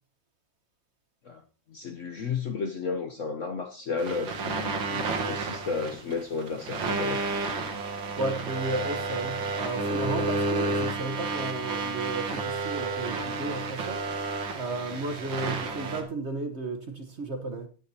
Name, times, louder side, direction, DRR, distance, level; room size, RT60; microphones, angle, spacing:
voice 1, 1.7-7.2, left 5 dB, 55° left, 0.9 m, -33 dB
sound 1, 4.0-16.0, right 3 dB, 80° right, 2.1 m, -31 dB
voice 2, 8.2-17.7, right 2 dB, 40° right, 1.3 m, -34 dB
15.5 x 9.9 x 2.8 m
omnidirectional pair, 2.0 m